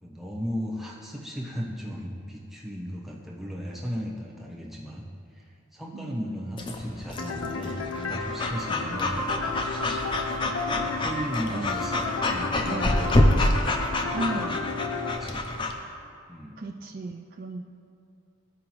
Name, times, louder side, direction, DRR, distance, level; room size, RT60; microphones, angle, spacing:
voice 1, 0.0-5.1 5.3-9.7 10.7-13.1 14.0-14.6 15.1-15.5 16.3-16.6, equal, ahead, -5 dB, 0.9 m, -36 dB
voice 2, 5.9-6.6 11.5-11.8 12.6-12.9 14.1-14.5 16.6-17.6, right 2 dB, 45° right, 3 dB, 0.3 m, -35 dB
Breathing / Dog, 6.6-15.7, left 1 dB, 25° left, 0.5 m, -27 dB
sound 1, 7.2-15.2, left 3 dB, 85° left, 0.6 m, -33 dB
14.0 x 4.9 x 3.0 m, 2.5 s
head